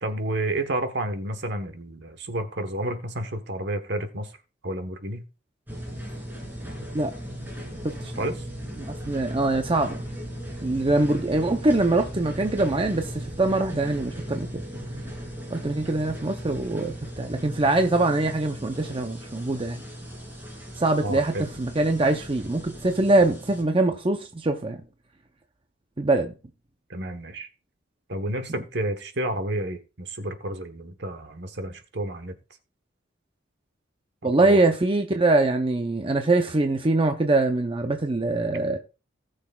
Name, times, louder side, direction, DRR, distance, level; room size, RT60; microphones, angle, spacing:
voice 1, 0.0-4.3 4.6-5.2 8.2-8.5 21.0-21.5 26.9-27.5 28.1-32.4 34.2-34.6, right 1 dB, 55° right, 1.2 m, -30 dB
sound 1, 5.7-23.6, equal, 10° right, 2.7 m, -37 dB
voice 2, 8.9-10.0 10.6-14.6 15.5-19.8 20.8-24.8 26.0-26.3 34.2-38.8, right 2 dB, 25° right, 0.6 m, -23 dB
18.5 x 6.5 x 2.3 m
head